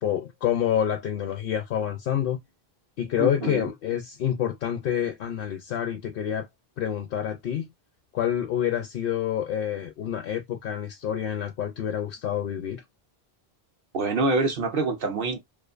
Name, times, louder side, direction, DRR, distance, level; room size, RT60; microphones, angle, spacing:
voice 1, 0.0-2.4 3.0-6.5 6.8-7.7 8.1-12.8, left 10 dB, 65° left, 0.7 m, -28 dB
voice 2, 3.2-3.7 13.9-15.4, right 3 dB, 65° right, 0.8 m, -26 dB
2.5 x 2.5 x 2.4 m
omnidirectional pair, 1.0 m